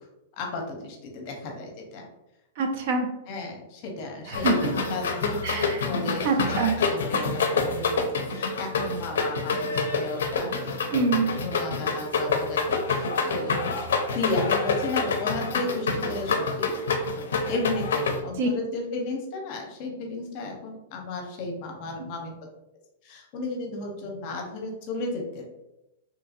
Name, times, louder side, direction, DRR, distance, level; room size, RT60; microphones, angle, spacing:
voice 1, 0.3-2.0 3.3-4.6 4.9-10.8 11.4-13.6 14.1-16.8 17.1-22.3 23.0-25.5, left 2 dB, 45° left, 2 dB, 0.7 m, -34 dB
voice 2, 2.6-3.1 4.3-4.7 5.4-5.8 6.2-6.7 10.9-11.3 18.4-18.5, right 4 dB, 55° right, 4 dB, 0.5 m, -25 dB
sound 1, 4.3-18.2, left 4 dB, 85° left, 0.4 m, -27 dB
2.8 x 2.6 x 2.5 m, 0.90 s
hypercardioid pair, 140°, 0 cm